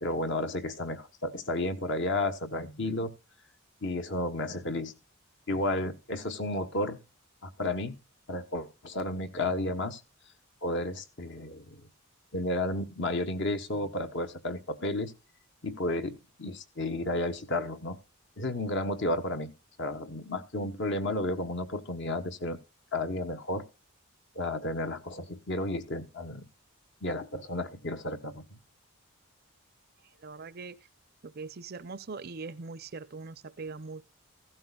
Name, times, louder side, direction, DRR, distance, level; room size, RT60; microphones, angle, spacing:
voice 1, 0.0-3.1 3.8-4.9 5.5-7.0 7.4-8.0 8.3-10.0 10.6-11.8 12.3-15.1 15.6-18.0 18.4-22.6 22.9-23.6 24.3-26.4 27.0-28.6, left 1 dB, 55° left, 1.1 m, -32 dB
voice 2, 30.2-30.8 31.2-34.0, right 4 dB, 45° right, 0.6 m, -41 dB
15.5 x 12.5 x 2.3 m
head